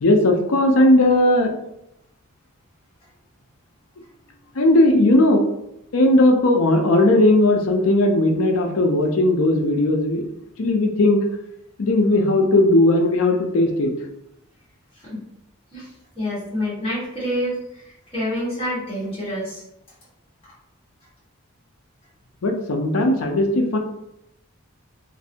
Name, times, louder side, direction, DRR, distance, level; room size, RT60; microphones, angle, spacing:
voice 1, 0.0-1.5 4.5-5.4 5.9-10.2 10.6-11.2 11.8-13.9 22.4-23.8, left 1 dB, 75° left, 3 dB, 0.5 m, -17 dB
voice 2, 16.1-19.6 20.4-20.5, equal, 25° left, -8 dB, 1.5 m, -28 dB
3.1 x 2.6 x 2.7 m, 0.82 s
head